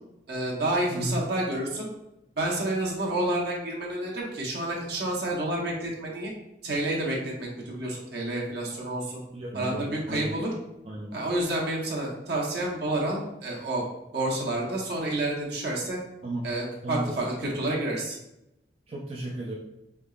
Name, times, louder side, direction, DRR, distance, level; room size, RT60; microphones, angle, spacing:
voice 1, 0.3-1.9 2.4-6.3 6.6-9.2 9.5-10.5 11.1-13.8 14.1-16.0 16.4-18.2, right 1 dB, 65° right, -2 dB, 1.0 m, -29 dB
voice 2, 0.9-1.2 9.3-10.3 10.8-11.2 16.2-16.5 16.8-17.2 18.9-19.5, right 1 dB, 35° right, -3 dB, 0.4 m, -34 dB
3.8 x 3.5 x 2.4 m, 0.87 s
head